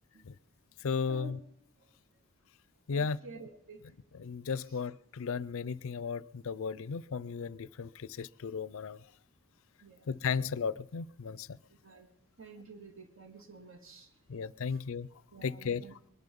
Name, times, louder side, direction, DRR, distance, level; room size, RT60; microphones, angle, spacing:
voice 1, 0.8-1.4 2.9-3.2 4.1-9.0 10.1-11.6 14.3-15.1 15.4-15.8, left 5 dB, 65° left, 21 dB, 0.5 m, -35 dB
voice 2, 2.9-3.8 9.8-10.1 11.8-12.1 12.4-14.1 14.7-14.8 15.3-15.9, right 3 dB, 65° right, 6 dB, 2.2 m, -50 dB
22.5 x 10.5 x 5.3 m, 0.79 s
head